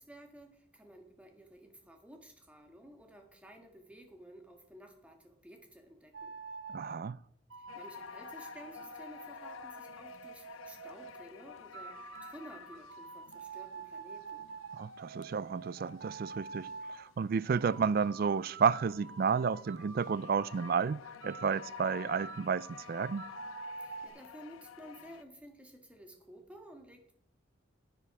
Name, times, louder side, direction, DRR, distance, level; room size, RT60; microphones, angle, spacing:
voice 1, 0.0-6.3 7.6-14.5 23.8-27.1, right 1 dB, 5° right, 1.6 m, -53 dB
sound 1, 6.1-7.0 7.5-11.2 11.7-17.0 17.5-20.8 21.2-24.1, right 4 dB, 75° right, 1.0 m, -47 dB
voice 2, 6.7-7.2 14.8-23.3, right 6 dB, 50° right, 0.3 m, -31 dB
sound 2, 7.7-25.2, left 8 dB, 85° left, 0.5 m, -51 dB
9.8 x 9.5 x 4.8 m
head